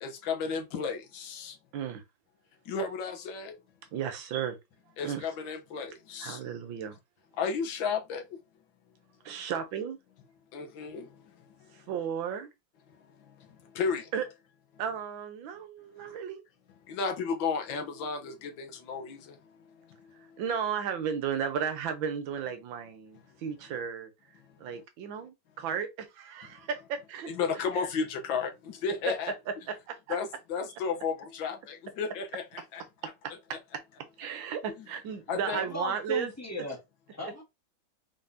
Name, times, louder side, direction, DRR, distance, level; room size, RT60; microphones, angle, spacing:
voice 1, 0.0-1.5 2.7-3.6 5.0-6.4 7.4-8.2 10.5-11.1 13.8-14.1 16.9-19.4 27.3-29.3 30.1-32.8 34.8-34.9 35.3-35.6, left 5 dB, 75° left, 1.7 m, -33 dB
voice 2, 3.9-4.6 5.0-5.3 6.2-7.0 9.2-10.0 11.7-12.5 14.1-14.2 14.8-16.4 20.4-24.1 24.6-27.7 29.5-30.2 33.0-33.8 34.2-36.3 37.2-37.3, right 7 dB, 80° right, 1.6 m, -34 dB
voice 3, 35.5-36.8 37.1-37.4, left 3 dB, 10° left, 1.2 m, -37 dB
4.7 x 3.7 x 2.7 m
omnidirectional pair, 2.2 m